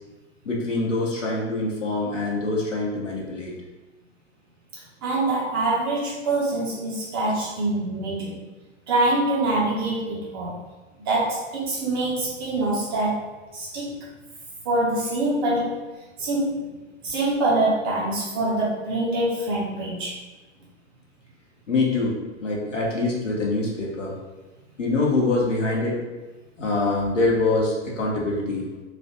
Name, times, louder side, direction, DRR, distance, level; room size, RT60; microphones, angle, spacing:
voice 1, 0.4-3.5 21.7-24.1 24.8-26.0 26.6-28.6, left 2 dB, 75° left, -3 dB, 0.9 m, -24 dB
voice 2, 5.0-8.4 8.9-10.6 11.0-14.1 14.6-15.9 16.2-16.7 17.0-20.1, right 2 dB, 20° right, -6 dB, 0.4 m, -25 dB
3.2 x 2.1 x 2.7 m, 1.2 s
figure-of-eight pair, 105°, 37 cm